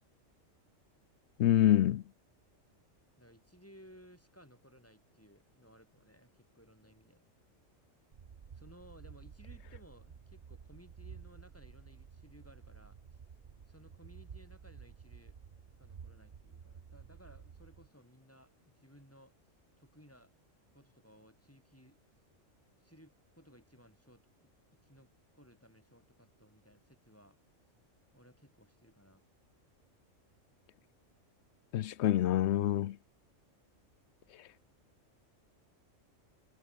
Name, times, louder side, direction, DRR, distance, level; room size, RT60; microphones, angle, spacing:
voice 1, 1.4-2.0 31.7-33.0, left 12 dB, 65° left, 0.8 m, -26 dB
voice 2, 3.2-7.2 8.5-13.0 13.7-15.4 15.8-19.3 19.8-20.3 20.7-22.0 22.8-27.4 28.1-29.2, equal, 10° left, 5.5 m, -60 dB
sound 1, 8.1-17.9, right 6 dB, 45° right, 1.0 m, -52 dB
omnidirectional pair, 1.3 m